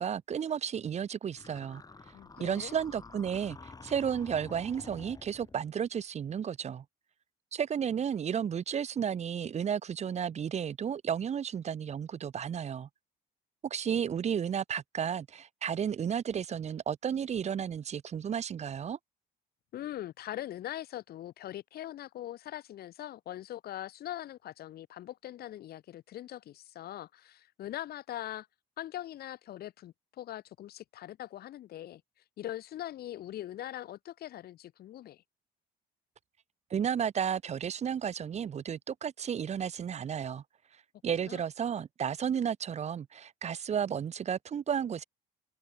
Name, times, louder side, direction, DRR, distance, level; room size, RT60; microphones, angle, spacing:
voice 1, 0.0-1.8 2.4-3.6 3.8-6.8 7.5-12.9 13.6-19.0 36.7-40.4 41.0-45.0, right 8 dB, 40° right, 1.5 m, -33 dB
sound 1, 1.4-5.7, left 4 dB, 20° left, 5.9 m, -50 dB
voice 2, 2.1-2.7 19.7-28.5 28.8-32.0 32.4-35.2 41.2-41.4, left 13 dB, 65° left, 7.9 m, -42 dB
cardioid pair, 110°, 17 cm